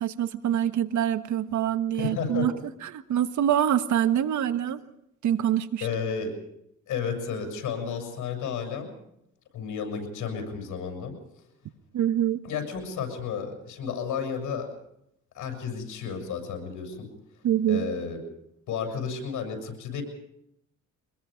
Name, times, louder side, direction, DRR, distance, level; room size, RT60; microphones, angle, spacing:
voice 1, 0.0-2.5 2.8-4.8 5.2-5.9 11.9-12.4 17.4-17.8, right 10 dB, 70° right, 11 dB, 1.3 m, -25 dB
voice 2, 2.0-2.5 5.8-6.4 6.9-8.9 9.5-11.1 12.4-14.7 15.3-17.1 17.7-18.2 18.7-20.0, left 6 dB, 80° left, 4 dB, 7.1 m, -32 dB
25.0 x 21.0 x 5.2 m, 0.79 s
cardioid pair, 90°, 30 cm